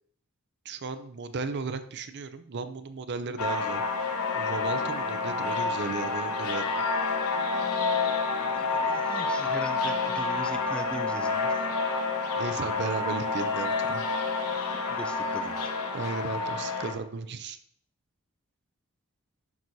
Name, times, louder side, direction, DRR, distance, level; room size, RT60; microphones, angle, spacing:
voice 1, 0.7-3.8 4.3-6.8 12.4-14.1 15.9-17.6, right 4 dB, 50° right, 10 dB, 0.5 m, -35 dB
sound 1, 3.4-16.9, left 4 dB, 85° left, 1.0 m, -29 dB
voice 2, 8.5-11.6 14.9-15.7, left 1 dB, 5° left, 7 dB, 0.4 m, -40 dB
10.5 x 6.1 x 2.7 m, 0.65 s
head